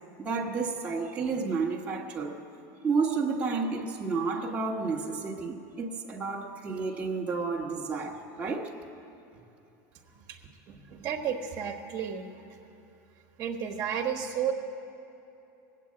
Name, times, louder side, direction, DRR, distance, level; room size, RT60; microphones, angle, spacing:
voice 1, 0.2-2.4 2.8-8.7, right 4 dB, 15° right, -3 dB, 1.2 m, -31 dB
voice 2, 10.7-12.2 13.4-14.5, right 8 dB, 40° right, 3 dB, 1.3 m, -32 dB
19.5 x 8.5 x 8.6 m, 2.9 s
supercardioid pair, 155°, 9 cm